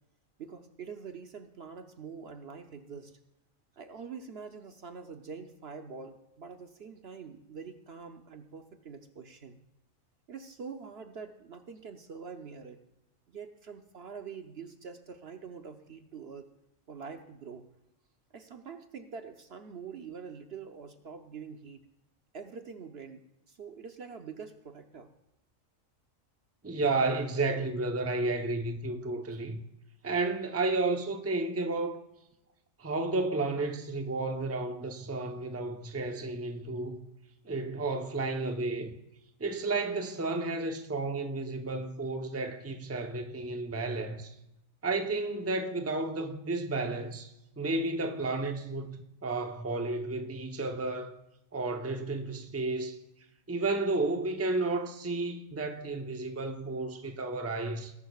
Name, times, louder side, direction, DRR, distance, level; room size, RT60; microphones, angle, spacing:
voice 1, 0.4-3.2 3.8-9.6 10.3-12.8 13.3-16.5 16.9-17.7 18.3-21.9 22.3-25.1, right 5 dB, 55° right, 1.0 m, -45 dB
voice 2, 26.6-29.6 30.0-32.0 32.8-37.0 37.4-38.9 39.4-44.3 44.8-51.1 51.5-53.0 53.5-57.9, right 3 dB, 15° right, 0.7 m, -32 dB
20.5 x 11.0 x 2.4 m
omnidirectional pair, 1.4 m